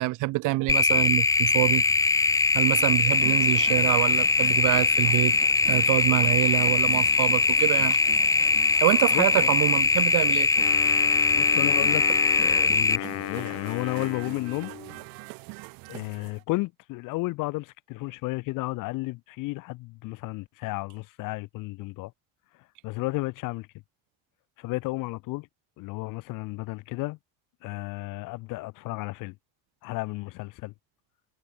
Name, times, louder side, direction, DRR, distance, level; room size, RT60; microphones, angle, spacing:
voice 1, 0.0-1.8 2.5-5.4 5.7-8.0 8.8-10.5, right 21 dB, 60° right, 1.4 m, -26 dB
sound 1, 0.7-13.0, left 4 dB, 10° left, 0.6 m, -22 dB
sound 2, 3.1-16.4, right 31 dB, 80° right, 5.4 m, -43 dB
voice 2, 9.1-9.5 11.3-12.1 12.3-14.7 15.9-22.1 22.8-23.7 24.6-25.5 25.8-27.2 27.6-29.3 29.8-30.7, left 22 dB, 65° left, 2.8 m, -33 dB
Wind instrument woodwind instrument, 10.6-15.0, left 14 dB, 45° left, 1.6 m, -35 dB
cardioid pair, 150°, 34 cm